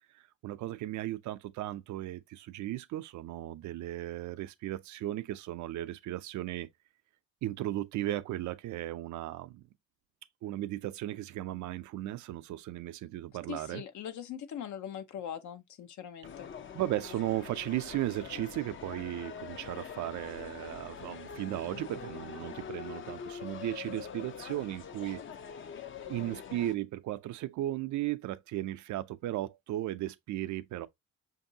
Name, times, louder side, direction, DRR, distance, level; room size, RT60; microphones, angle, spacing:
voice 1, 0.4-6.7 7.4-9.6 10.4-13.8 16.7-25.2 26.1-30.9, right 14 dB, 70° right, 0.5 m, -36 dB
voice 2, 13.5-16.5, left 9 dB, 70° left, 0.8 m, -41 dB
sound 1, 16.2-26.7, left 7 dB, 40° left, 0.6 m, -44 dB
5.2 x 2.7 x 2.6 m
cardioid pair, 90°, 30 cm